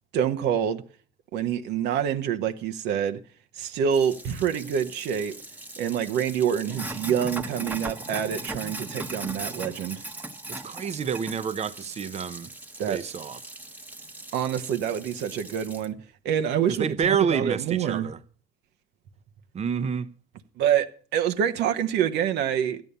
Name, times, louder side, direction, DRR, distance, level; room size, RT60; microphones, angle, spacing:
voice 1, 0.1-0.8 1.3-3.2 3.5-5.3 5.8-10.0 12.8-13.0 14.3-16.0 16.2-18.1 20.6-22.8, right 8 dB, 80° right, 1.1 m, -26 dB
Sink (filling or washing), 3.9-15.9, right 2 dB, 10° right, 1.2 m, -39 dB
voice 2, 10.5-12.5 12.9-13.4 16.7-18.2 19.5-20.1, right 7 dB, 40° right, 0.9 m, -28 dB
13.0 x 9.3 x 6.8 m
cardioid pair, 110°, 17 cm